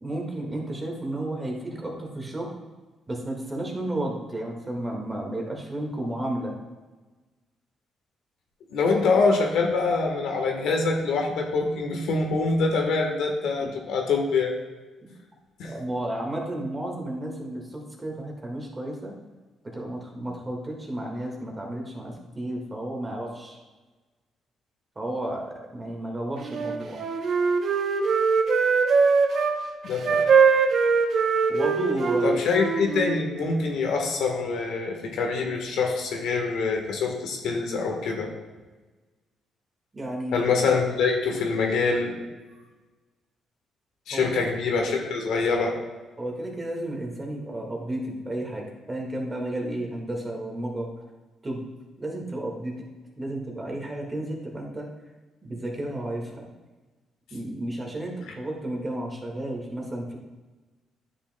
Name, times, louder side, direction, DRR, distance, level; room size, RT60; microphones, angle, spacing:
voice 1, 0.0-2.5 3.1-6.5 13.6-13.7 15.0-15.1 15.7-19.1 19.7-23.6 24.9-27.0 31.5-32.4 39.9-40.4 44.1-44.3 46.2-50.9 51.4-51.6 52.0-52.9 53.1-54.9 55.4-56.4 57.3-60.2, right 1 dB, 20° right, 0 dB, 1.7 m, -32 dB
voice 2, 8.7-14.5 15.6-15.7 29.8-30.2 32.2-38.3 40.3-42.2 44.1-45.8, left 4 dB, 85° left, 2 dB, 1.2 m, -25 dB
Wind instrument woodwind instrument, 26.4-29.6 30.0-33.2, right 5 dB, 65° right, 0.7 m, -22 dB
9.8 x 6.2 x 2.2 m, 1.2 s
cardioid pair, 90°, 0 cm